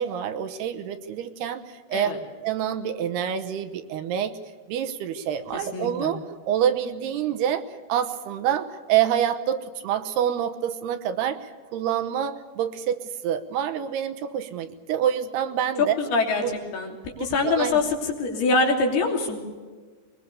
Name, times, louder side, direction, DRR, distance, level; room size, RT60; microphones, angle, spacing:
voice 1, 0.0-2.1 2.4-4.3 4.7-6.2 6.5-7.6 7.9-16.0 16.4-16.5 17.2-17.8, right 9 dB, 80° right, 9 dB, 3.1 m, -27 dB
voice 2, 5.5-6.1 15.8-16.4 16.7-17.9 18.2-19.4, left 3 dB, 70° left, 1 dB, 4.9 m, -24 dB
21.5 x 21.5 x 6.9 m, 1.5 s
omnidirectional pair, 4.8 m